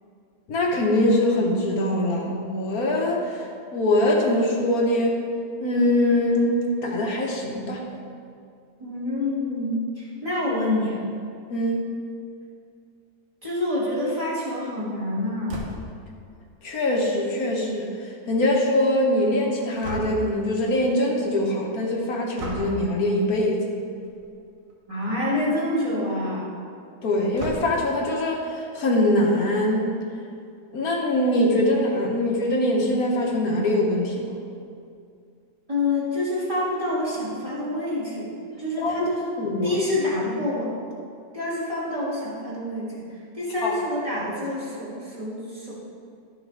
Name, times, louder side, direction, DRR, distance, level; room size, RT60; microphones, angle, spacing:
voice 1, 0.5-5.2 5.6-6.5 6.8-7.8 11.5-11.9 16.6-23.6 27.0-30.0 30.7-34.3 38.8-39.1 39.4-39.8 43.6-43.7, left 1 dB, 65° left, -1 dB, 1.5 m, -23 dB
voice 2, 8.8-11.1 13.4-15.6 24.9-26.5 35.7-38.3 38.6-39.3 39.6-40.9 41.3-43.0 43.3-45.7, left 1 dB, 20° right, -9 dB, 2.5 m, -27 dB
sound 1, 15.5-16.0 19.8-20.4 22.4-22.8 24.0-24.3 24.7-24.8 25.0-25.1 27.4-28.0, right 1 dB, 60° right, 1.4 m, -35 dB
12.5 x 6.5 x 3.4 m, 2.4 s
omnidirectional pair, 1.7 m